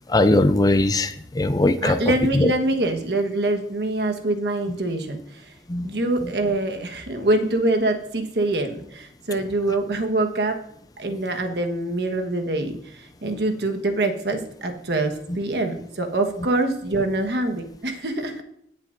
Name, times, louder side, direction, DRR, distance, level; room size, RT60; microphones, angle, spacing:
voice 1, 0.1-2.0 2.3-2.5 5.7-5.9, left 2 dB, 20° left, 10 dB, 0.5 m, -19 dB
voice 2, 1.8-5.2 5.8-10.6 11.0-18.4, right 2 dB, 65° right, 5 dB, 1.3 m, -24 dB
17.5 x 7.2 x 2.6 m, 0.71 s
head